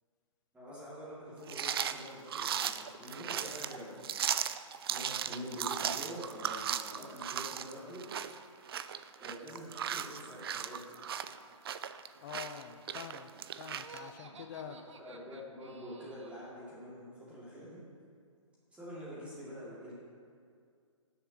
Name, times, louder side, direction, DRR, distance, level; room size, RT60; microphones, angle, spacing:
voice 1, 0.5-4.2 4.9-8.0 9.2-11.0 14.2-14.4 14.7-17.8 18.7-19.9, equal, 5° right, -9 dB, 2.1 m, -46 dB
sound 1, 1.5-14.0, right 9 dB, 45° right, 0.4 m, -37 dB
voice 2, 12.2-13.3 13.6-14.8, left 9 dB, 35° left, 9 dB, 0.6 m, -45 dB
Laughter, 13.7-16.6, right 4 dB, 65° right, 0.9 m, -54 dB
17.5 x 6.8 x 2.8 m, 2.2 s
figure-of-eight pair, 130°, 17 cm